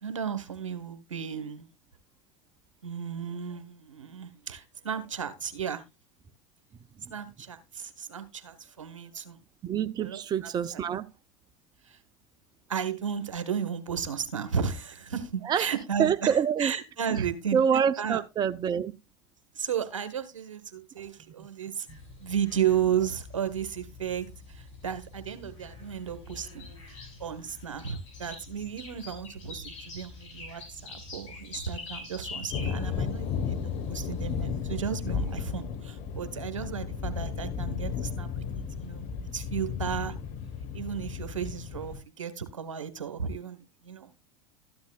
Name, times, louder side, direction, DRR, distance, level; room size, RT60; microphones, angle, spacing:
voice 1, 0.0-1.7 2.8-5.8 7.1-9.4 10.0-10.8 11.8-12.0 12.7-17.6 18.0-18.2 19.5-21.9 22.2-26.7 27.2-38.4 38.8-40.1 40.7-44.1, right 8 dB, 85° right, 1.3 m, -34 dB
voice 2, 9.6-11.1 15.4-15.7 16.0-16.7 17.1-17.2 17.5-18.9 21.9-22.0, right 8 dB, 25° right, 0.6 m, -26 dB
sound 1, 21.9-35.6, left 3 dB, 70° left, 6.4 m, -46 dB
sound 2, 32.5-42.0, left 6 dB, 50° left, 1.4 m, -34 dB
13.5 x 10.5 x 2.4 m
hypercardioid pair, 85°, 16 cm